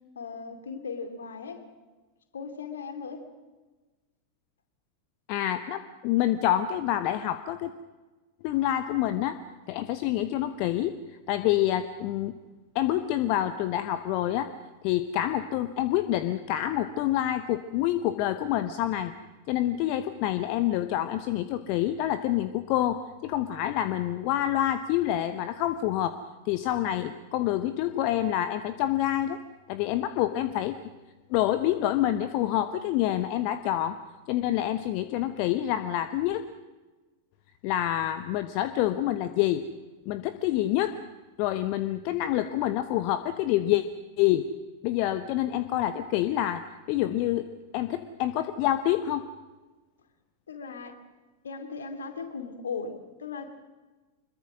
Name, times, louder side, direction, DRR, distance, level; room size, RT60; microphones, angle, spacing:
voice 1, 0.2-1.6 2.3-3.3 50.5-51.0 51.4-53.5, left 5 dB, 70° left, 7 dB, 2.5 m, -37 dB
voice 2, 5.3-7.7 8.4-9.4 9.7-12.3 12.7-14.5 14.8-19.1 19.5-26.2 26.4-29.4 29.7-30.8 31.3-34.0 34.3-36.4 37.6-39.6 40.1-41.0 41.4-43.8 44.2-44.4 44.8-47.5 47.7-49.2, left 13 dB, 45° left, 11 dB, 0.9 m, -27 dB
25.0 x 22.0 x 6.2 m, 1.2 s
figure-of-eight pair, 90°, 0 cm